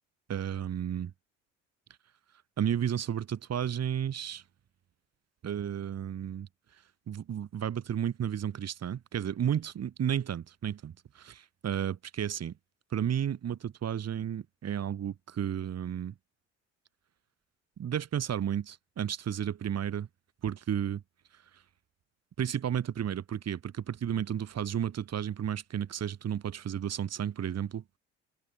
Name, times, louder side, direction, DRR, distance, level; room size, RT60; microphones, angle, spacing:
voice 1, 0.3-1.1 2.6-4.4 5.4-6.5 7.1-12.5 12.9-16.1 17.8-20.1 20.4-21.0 21.5-21.6 22.4-27.8, right 9 dB, 40° right, 5.5 m, -32 dB
figure-of-eight pair, 55°, 37 cm